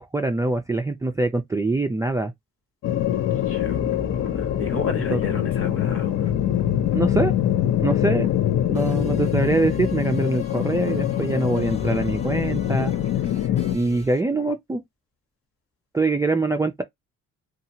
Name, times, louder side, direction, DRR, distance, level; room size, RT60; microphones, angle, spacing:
voice 1, 0.0-2.3 5.1-5.2 6.9-7.3 7.8-8.3 8.6-12.9 13.7-14.8 15.9-16.8, right 3 dB, 10° right, 0.3 m, -24 dB
sound 1, 2.8-13.8, left 11 dB, 65° left, 0.6 m, -24 dB
voice 2, 3.5-6.3, left 4 dB, 45° left, 1.2 m, -31 dB
sound 2, 3.6-4.7 5.2-7.6 7.9-14.2, left 2 dB, 20° left, 0.8 m, -38 dB
2.7 x 2.4 x 2.7 m
cardioid pair, 90°, 30 cm